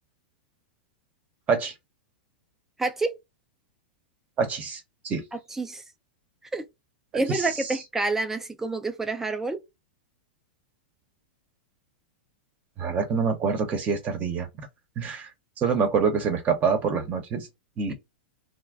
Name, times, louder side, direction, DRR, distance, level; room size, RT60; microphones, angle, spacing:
voice 1, 2.8-3.1 5.3-5.8 6.5-6.7 7.1-9.6, right 3 dB, 5° right, 0.5 m, -28 dB
voice 2, 4.4-5.2 7.1-7.5 12.8-14.5 15.0-15.3 15.6-17.5 17.8-17.9, right 5 dB, 30° right, 0.8 m, -26 dB
2.4 x 2.1 x 3.3 m
hypercardioid pair, 130°, 5 cm